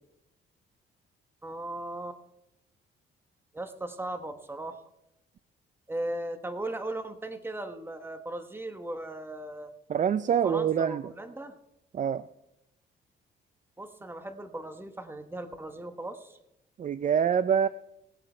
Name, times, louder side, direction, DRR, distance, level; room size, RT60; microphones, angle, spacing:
voice 1, 1.4-2.2 3.5-4.8 5.9-9.7 10.3-11.5 13.8-16.4, right 1 dB, 10° right, 8 dB, 1.3 m, -37 dB
voice 2, 9.9-11.1 11.9-12.2 16.8-17.7, right 8 dB, 40° right, 15 dB, 0.4 m, -25 dB
19.5 x 7.5 x 4.4 m, 0.85 s
cardioid pair, 90°, 20 cm